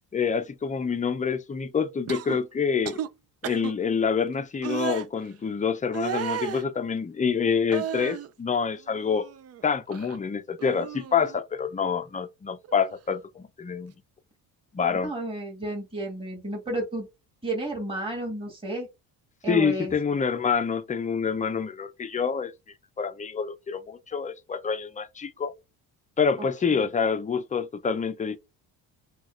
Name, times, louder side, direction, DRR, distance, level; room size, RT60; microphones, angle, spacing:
voice 1, 0.1-3.0 3.4-9.3 9.6-13.9 14.7-15.1 19.5-22.5 23.0-25.5 26.2-28.4, left 6 dB, 20° left, 0.6 m, -27 dB
sound 1, 2.1-2.4 2.8-3.1 3.4-3.7 4.6-5.0 5.9-6.6 7.7-8.3 8.8-9.6 9.9-10.2 10.6-11.4 12.6-12.8, right 9 dB, 40° right, 0.4 m, -34 dB
voice 2, 14.9-17.1 17.4-18.9 19.4-19.9 26.4-26.9, right 1 dB, 15° right, 2.2 m, -32 dB
6.1 x 2.4 x 2.5 m
cardioid pair, 90°, 40 cm